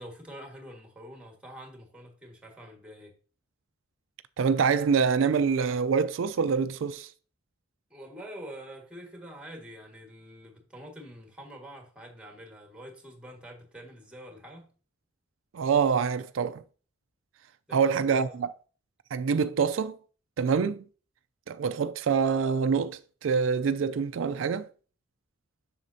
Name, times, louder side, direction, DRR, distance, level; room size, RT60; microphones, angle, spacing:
voice 1, 0.0-3.1 7.9-14.7 17.7-18.4, equal, 5° right, 1.6 m, -46 dB
voice 2, 4.4-7.1 15.5-16.6 17.7-18.5 19.1-20.0 20.4-20.8 21.5-24.7, right 6 dB, 75° right, 0.4 m, -25 dB
7.4 x 6.4 x 2.7 m
head